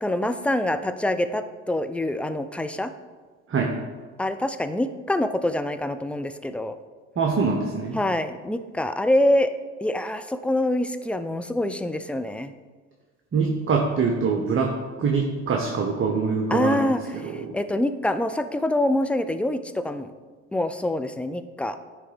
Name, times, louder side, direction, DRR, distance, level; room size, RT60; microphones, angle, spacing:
voice 1, 0.0-2.9 4.2-6.8 7.9-9.5 9.8-12.5 16.5-20.1 20.5-21.8, left 1 dB, 5° left, 10 dB, 0.4 m, -25 dB
voice 2, 7.2-8.0 13.3-16.9 17.2-17.6, right 4 dB, 35° right, 2 dB, 1.0 m, -24 dB
9.7 x 3.3 x 5.1 m, 1.4 s
hypercardioid pair, 65°, 35 cm